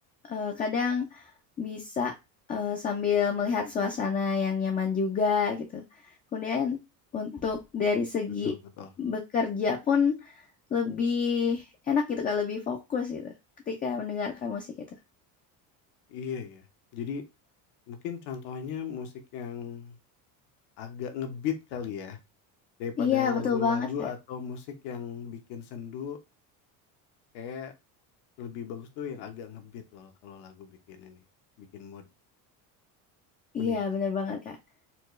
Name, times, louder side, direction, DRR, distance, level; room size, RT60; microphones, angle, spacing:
voice 1, 0.3-1.3 1.6-2.1 2.5-5.8 6.3-6.8 7.1-8.5 9.0-10.4 10.7-13.3 13.7-14.7 23.0-23.9 33.5-34.5, left 6 dB, 20° left, 0.4 m, -28 dB
voice 2, 8.4-8.9 16.1-16.6 16.9-17.2 17.9-20.0 20.8-22.2 22.8-26.2 27.3-27.7 28.4-31.2 31.6-32.1 33.6-33.8, left 7 dB, 70° left, 1.0 m, -37 dB
4.3 x 2.3 x 3.1 m
cardioid pair, 140°, 41 cm